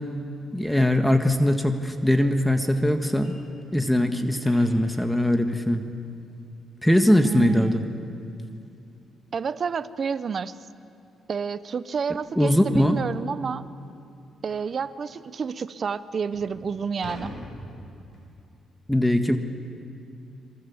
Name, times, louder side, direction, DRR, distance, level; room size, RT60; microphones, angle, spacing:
voice 1, 0.5-3.3 3.7-5.8 6.8-7.8 12.4-13.0 18.9-19.4, left 1 dB, 5° left, 6 dB, 1.6 m, -21 dB
sound 1, 1.8-4.9 7.7-7.8 8.3-8.5 8.8-8.9 9.4-9.5 10.6-10.7 11.1-11.3 11.9-12.0 12.4-12.5 13.0-13.1 14.5-14.8 15.5-15.6 16.1-18.4, left 1 dB, 55° left, 7.8 m, -45 dB
voice 2, 7.2-7.7 9.3-10.6 11.3-13.6 14.4-17.3, right 6 dB, 45° right, 14 dB, 0.9 m, -29 dB
27.0 x 23.0 x 7.2 m, 2.6 s
cardioid pair, 95°, 0 cm